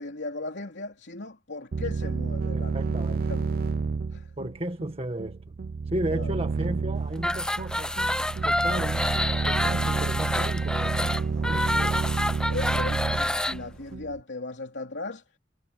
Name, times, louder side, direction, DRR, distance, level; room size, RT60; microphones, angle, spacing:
voice 1, 0.0-3.4 4.1-4.3 6.1-6.3 9.7-9.9 12.5-15.2, left 3 dB, 80° left, 3.0 m, -37 dB
sound 1, 1.7-14.2, right 4 dB, 55° right, 0.4 m, -30 dB
voice 2, 2.5-3.3 4.4-5.4 5.9-7.9 8.4-9.1 9.4-12.0, right 1 dB, 35° right, 1.7 m, -34 dB
sound 2, 7.2-13.6, left 1 dB, 5° left, 0.5 m, -28 dB
head